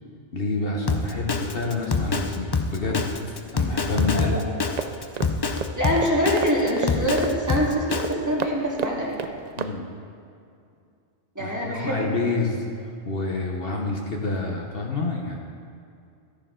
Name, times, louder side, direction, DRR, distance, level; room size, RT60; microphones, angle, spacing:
voice 1, 0.3-4.4 9.6-9.9 11.4-12.6 13.0-15.4, left 3 dB, 55° left, 0 dB, 1.2 m, -28 dB
Drum kit, 0.9-8.1, left 4 dB, 40° left, 0.3 m, -25 dB
sound 1, 4.8-9.7, right 6 dB, 55° right, 0.5 m, -33 dB
voice 2, 5.8-9.2 11.4-12.3, equal, 15° right, -5 dB, 1.9 m, -25 dB
13.5 x 10.0 x 3.7 m, 2.4 s
omnidirectional pair, 1.2 m